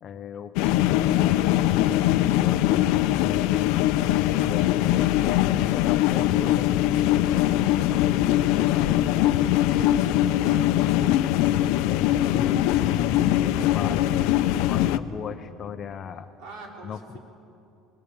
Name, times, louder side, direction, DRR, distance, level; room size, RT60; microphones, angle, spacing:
voice 1, 0.0-3.7 4.2-9.1 11.8-14.2 14.6-16.3 16.8-17.2, left 7 dB, 30° left, 9 dB, 0.7 m, -38 dB
sound 1, 0.6-15.0, left 13 dB, 75° left, 0.6 m, -22 dB
voice 2, 9.6-11.0 16.4-17.2, right 2 dB, 60° right, 0 dB, 4.1 m, -44 dB
21.0 x 20.0 x 7.1 m, 2.7 s
cardioid pair, 175°, 0 cm